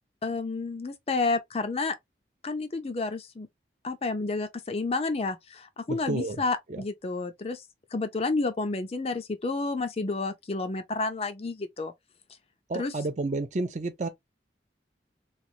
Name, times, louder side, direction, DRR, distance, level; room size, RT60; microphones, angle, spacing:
voice 1, 0.2-1.9 2.4-3.5 3.8-7.6 7.9-11.9 12.7-12.9, left 3 dB, 35° left, 0.4 m, -30 dB
voice 2, 5.9-6.4 6.7-6.8 12.7-14.1, right 3 dB, 40° right, 0.5 m, -31 dB
3.1 x 2.3 x 2.7 m
head